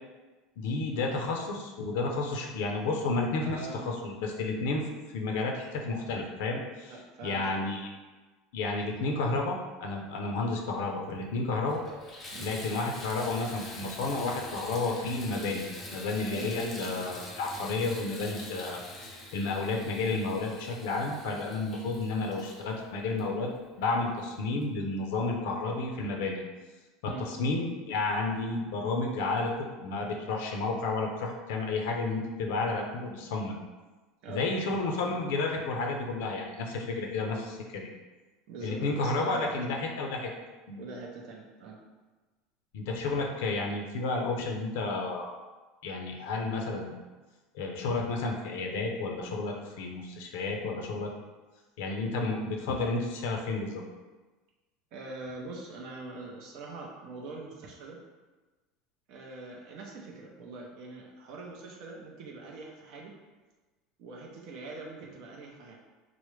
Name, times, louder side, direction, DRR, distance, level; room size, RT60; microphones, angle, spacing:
voice 1, 0.6-4.9 5.1-7.9 8.5-11.8 12.4-23.5 23.8-26.4 27.0-33.6 34.3-37.9 38.6-40.3 40.7-40.8 42.7-45.3 45.8-46.9 47.5-51.1 51.8-53.8, left 3 dB, 75° left, 1 dB, 0.5 m, -31 dB
voice 2, 3.4-4.0 6.9-7.7 12.3-12.5 16.3-16.5 27.1-27.3 34.2-34.4 38.5-39.7 40.8-41.8 54.9-58.0 59.1-63.1 64.0-65.8, right 3 dB, 50° right, -1 dB, 0.5 m, -43 dB
Water tap faucet / Bathtub (filling or washing), 11.0-11.1 11.6-24.0 24.6-24.7 25.2-25.3, left 1 dB, 20° left, 0.5 m, -45 dB
4.6 x 2.0 x 3.1 m, 1.2 s
cardioid pair, 170°, 0 cm